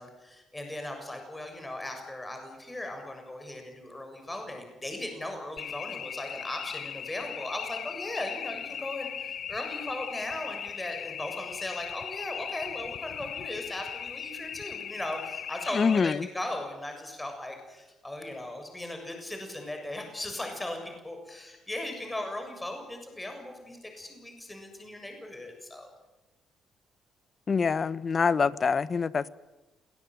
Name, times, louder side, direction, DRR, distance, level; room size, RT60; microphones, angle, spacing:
voice 1, 0.0-25.9, left 1 dB, 15° left, 4 dB, 7.1 m, -38 dB
sound 1, 5.6-16.2, left 9 dB, 60° left, 0.8 m, -38 dB
voice 2, 15.7-16.3 27.5-29.3, left 5 dB, 40° left, 16 dB, 1.1 m, -25 dB
27.0 x 19.0 x 9.4 m, 1.1 s
cardioid pair, 90°, 0 cm